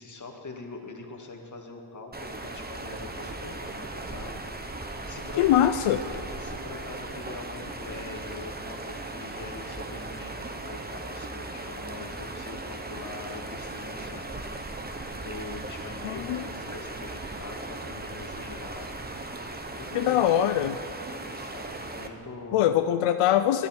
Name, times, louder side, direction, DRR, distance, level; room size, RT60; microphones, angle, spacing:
voice 1, 0.0-5.7 6.4-14.7 15.1-19.5 19.7-20.2 21.0-22.9, left 3 dB, 35° left, 2 dB, 2.2 m, -43 dB
sound 1, 2.1-22.1, right 2 dB, 20° right, 1.2 m, -38 dB
voice 2, 5.4-6.0 16.0-16.4 19.9-20.8 22.5-23.7, left 11 dB, 90° left, 9 dB, 0.6 m, -22 dB
19.0 x 11.0 x 4.6 m, 2.6 s
cardioid pair, 80°, 50 cm